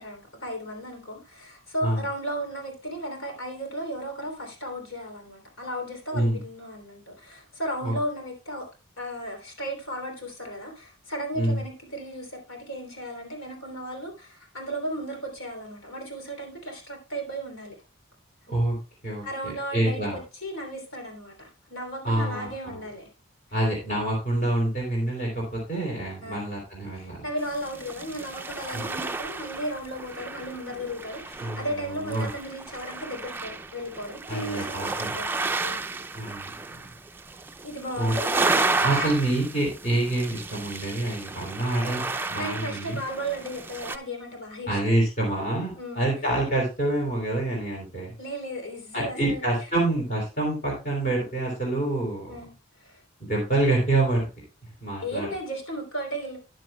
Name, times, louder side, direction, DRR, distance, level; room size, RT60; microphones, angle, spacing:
voice 1, 0.0-8.7 9.0-17.7 19.2-23.1 26.2-26.5 27.0-35.7 37.6-38.4 39.0-39.1 42.4-45.0 45.8-46.1 48.2-49.4 52.3-52.5 52.8-53.0 55.0-56.4, equal, 80° left, 2 dB, 3.2 m, -35 dB
voice 2, 19.0-20.2 22.0-22.8 23.5-27.2 28.7-28.9 31.4-32.3 34.3-35.2 36.1-36.5 38.0-38.1 38.8-43.0 44.7-48.1 48.9-52.3 53.2-54.2 54.8-55.3, right 1 dB, 40° left, -2 dB, 3.3 m, -27 dB
sound 1, 27.4-44.0, right 3 dB, 10° right, 0.4 m, -32 dB
13.5 x 9.6 x 2.2 m, 0.30 s
head